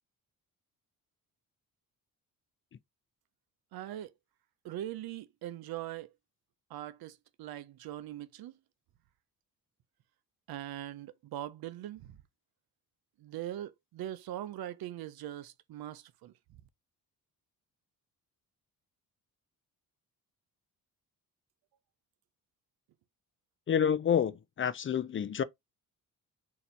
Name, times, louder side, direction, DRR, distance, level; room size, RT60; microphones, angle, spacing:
voice 1, 3.7-4.1 4.6-6.1 6.7-8.5 10.5-12.2 13.2-16.3, right 12 dB, 75° right, 0.6 m, -41 dB
voice 2, 23.7-25.4, left 8 dB, 35° left, 0.4 m, -28 dB
4.1 x 2.8 x 4.4 m
cardioid pair, 105°, 37 cm